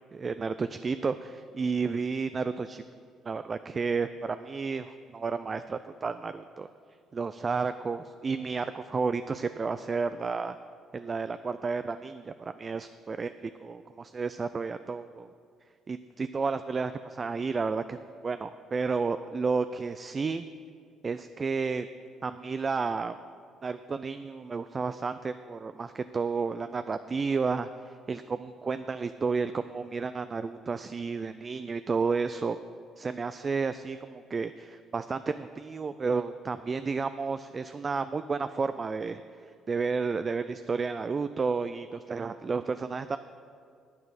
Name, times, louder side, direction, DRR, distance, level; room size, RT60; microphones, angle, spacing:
voice 1, 0.1-2.8 3.3-6.7 7.1-10.6 10.9-15.3 15.9-18.0 18.2-20.5 21.0-21.9 22.2-23.1 23.6-32.6 33.0-39.2 39.7-43.2, right 4 dB, 35° right, 11 dB, 0.3 m, -31 dB
9.5 x 8.9 x 5.9 m, 2.2 s
cardioid pair, 80°, 0 cm